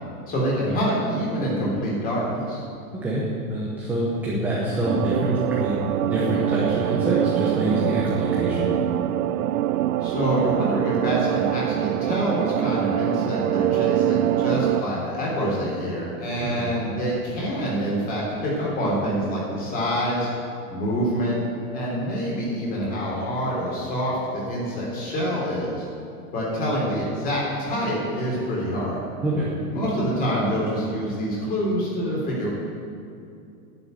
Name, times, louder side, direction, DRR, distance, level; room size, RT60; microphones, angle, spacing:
voice 1, 0.3-2.6 10.0-20.3 20.7-21.4 21.7-25.9 26.3-29.0 29.7-32.5, equal, 20° left, -5 dB, 3.5 m, -26 dB
voice 2, 3.5-8.7 16.4-16.7 29.2-29.5, right 1 dB, 5° right, -6 dB, 0.8 m, -25 dB
sound 1, 4.8-14.8, right 12 dB, 65° right, 0.7 m, -24 dB
11.0 x 6.9 x 9.3 m, 2.6 s
hypercardioid pair, 160°, 46 cm